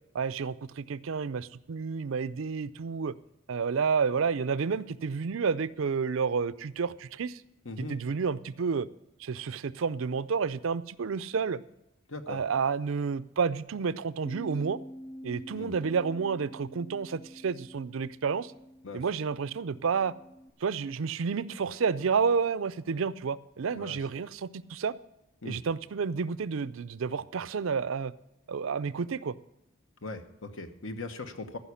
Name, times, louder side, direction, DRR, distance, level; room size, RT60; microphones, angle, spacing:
voice 1, 0.1-3.1 3.5-7.4 7.8-8.9 9.2-11.6 12.3-14.8 15.2-18.5 18.9-20.1 20.6-24.9 25.4-28.1 28.5-29.3, right 5 dB, 75° right, 16 dB, 0.5 m, -30 dB
voice 2, 7.6-8.0 12.1-12.4 15.5-15.8 18.8-19.0 23.7-24.0 25.4-25.6 30.0-31.6, left 3 dB, 70° left, 8 dB, 1.1 m, -39 dB
Bass guitar, 14.3-20.5, equal, 35° left, 0.7 m, -47 dB
14.5 x 5.6 x 8.4 m, 0.86 s
head